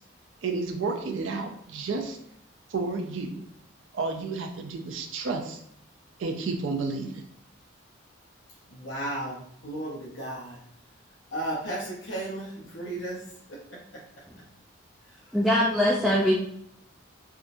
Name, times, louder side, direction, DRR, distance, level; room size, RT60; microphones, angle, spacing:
voice 1, 0.4-2.2 2.7-3.4 3.9-5.6 6.2-7.1, right 4 dB, 70° right, 4 dB, 0.4 m, -31 dB
voice 2, 8.7-10.6 11.3-13.2 13.9-14.0, right 1 dB, 65° left, -5 dB, 0.7 m, -34 dB
voice 3, 15.3-16.3, equal, ahead, -5 dB, 0.4 m, -22 dB
3.5 x 2.7 x 2.5 m, 0.69 s
head